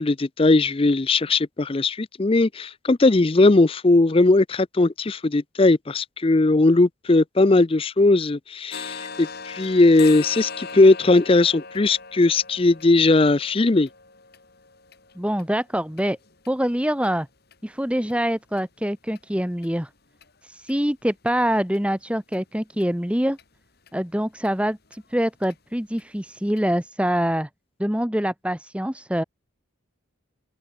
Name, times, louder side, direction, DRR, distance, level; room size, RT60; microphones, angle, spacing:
voice 1, 0.0-13.9, left 2 dB, 25° left, 0.5 m, -18 dB
sound 1, 8.7-16.5 17.0-17.1 17.5-17.7 18.1-18.2 18.6-18.7 19.2-19.3 19.6-19.7 20.2-20.3 20.7-20.8 21.3-21.4 21.7-21.8 22.3-22.4 22.8-22.9 23.4-23.5 23.9-24.0 24.4-24.5 24.9-25.0 25.4-25.5 26.0-26.1 26.6-26.7, left 5 dB, 50° left, 2.5 m, -40 dB
voice 2, 15.2-16.2 16.5-17.3 17.6-19.9 20.4-23.4 23.9-27.5 27.8-29.2, equal, 5° right, 1.3 m, -25 dB
open air
head